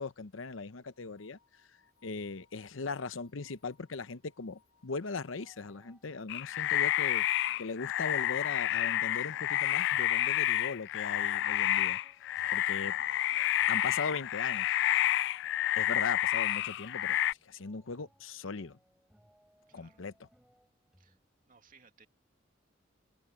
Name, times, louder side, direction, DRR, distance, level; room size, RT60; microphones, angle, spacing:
voice 1, 0.0-1.4 2.0-7.3 7.6-12.0 12.5-13.0 13.7-14.8 15.8-18.8 19.7-20.1, left 4 dB, 85° left, 0.8 m, -39 dB
sound 1, 0.9-11.7, left 6 dB, 45° left, 2.9 m, -71 dB
sound 2, 5.3-21.2, equal, 5° right, 5.3 m, -66 dB
sound 3, 6.3-17.3, left 13 dB, 65° left, 0.3 m, -29 dB
voice 2, 19.7-20.0 21.0-21.2 21.5-22.1, right 5 dB, 45° right, 2.5 m, -62 dB
open air
head